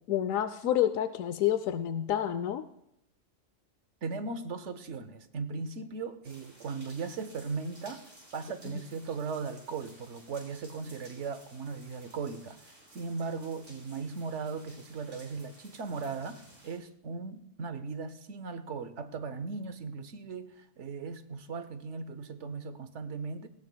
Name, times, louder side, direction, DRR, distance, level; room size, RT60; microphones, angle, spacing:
voice 1, 0.1-2.6, left 11 dB, 85° left, 11 dB, 1.0 m, -28 dB
voice 2, 4.0-8.0 8.3-23.5, right 4 dB, 65° right, 11 dB, 1.2 m, -38 dB
sound 1, 6.2-16.8, right 1 dB, 50° right, 4.8 m, -56 dB
18.5 x 17.0 x 2.3 m, 0.76 s
omnidirectional pair, 1.4 m